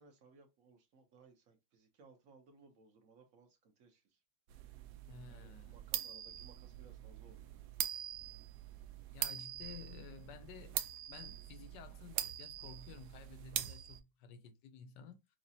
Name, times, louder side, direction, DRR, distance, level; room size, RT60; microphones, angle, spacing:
voice 1, 0.0-4.0 5.3-7.5, right 4 dB, 50° right, 1.2 m, -63 dB
sound 1, 4.5-14.0, right 11 dB, 75° right, 0.9 m, -43 dB
voice 2, 5.1-5.7 9.1-15.4, left 7 dB, 70° left, 1.3 m, -53 dB
6.1 x 2.4 x 2.8 m
omnidirectional pair, 2.2 m